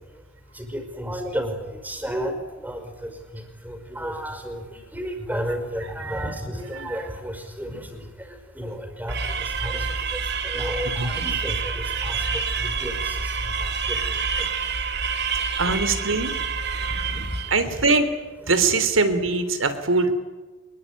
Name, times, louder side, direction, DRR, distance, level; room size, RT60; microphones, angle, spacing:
voice 1, 0.6-3.1 3.6-4.6 4.9-8.0 8.6-9.2 9.6-9.8 10.1-10.2 10.4-13.2 13.6-14.0 17.1-17.2 17.6-17.8, equal, 10° right, 6 dB, 5.4 m, -32 dB
sound 1, 9.1-17.7, right 5 dB, 60° right, 2.3 m, -27 dB
voice 2, 15.6-16.3 17.5-18.1 18.5-20.1, right 3 dB, 90° right, 10 dB, 3.5 m, -22 dB
24.5 x 22.0 x 9.8 m, 1.2 s
head